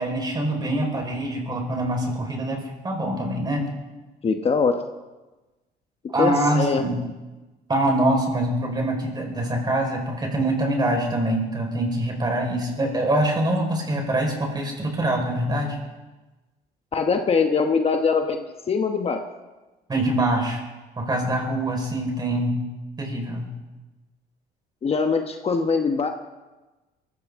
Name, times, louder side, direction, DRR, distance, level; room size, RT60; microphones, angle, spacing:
voice 1, 0.0-3.7 6.1-7.0 7.7-15.8 19.9-20.6 21.0-22.6 23.0-23.5, right 1 dB, 25° right, 1 dB, 4.6 m, -24 dB
voice 2, 4.2-4.8 6.2-6.8 16.9-19.2 24.8-26.1, left 5 dB, 35° left, 5 dB, 1.1 m, -22 dB
23.0 x 15.0 x 3.7 m, 1.2 s
cardioid pair, 110°, 17 cm